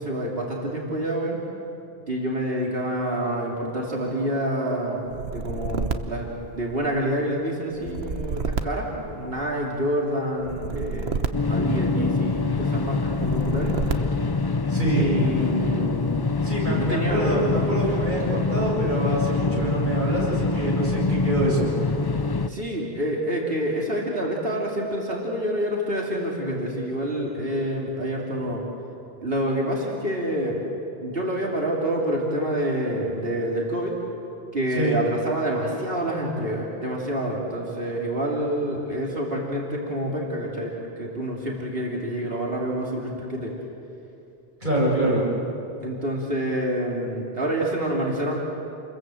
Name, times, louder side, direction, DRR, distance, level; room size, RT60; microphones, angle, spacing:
voice 1, 0.0-1.4 2.1-11.2 11.4-13.7 14.9-16.2 16.7-17.6 22.5-28.6 29.2-30.6 31.0-33.9 34.5-40.7 41.0-43.5 45.0-45.2 45.8-48.4, right 1 dB, 65° right, -2 dB, 3.3 m, -27 dB
sound 1, 5.1-7.1 7.7-9.7 10.4-12.3 13.1-14.4, right 5 dB, 85° right, 1.4 m, -30 dB
sound 2, 11.3-22.5, left 3 dB, 30° left, 0.5 m, -25 dB
voice 2, 14.7-15.1 16.4-21.7 34.8-35.0 44.6-45.2, right 1 dB, 50° right, -5 dB, 7.6 m, -25 dB
28.5 x 22.0 x 7.9 m, 2.8 s
omnidirectional pair, 1.0 m